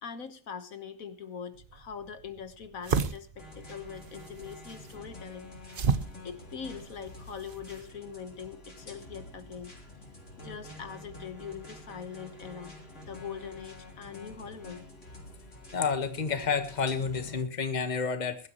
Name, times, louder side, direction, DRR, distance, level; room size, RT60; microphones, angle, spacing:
voice 1, 0.0-5.5 5.9-9.7 10.4-12.7 13.1-14.8, left 7 dB, 85° left, 10 dB, 1.8 m, -42 dB
sound 1, 1.6-7.9, right 6 dB, 45° right, 1.0 m, -35 dB
sound 2, 3.4-17.4, left 1 dB, 60° left, 4.0 m, -48 dB
voice 2, 15.7-18.5, left 5 dB, 35° left, 9 dB, 1.5 m, -30 dB
22.5 x 12.0 x 3.1 m, 0.33 s
omnidirectional pair, 1.4 m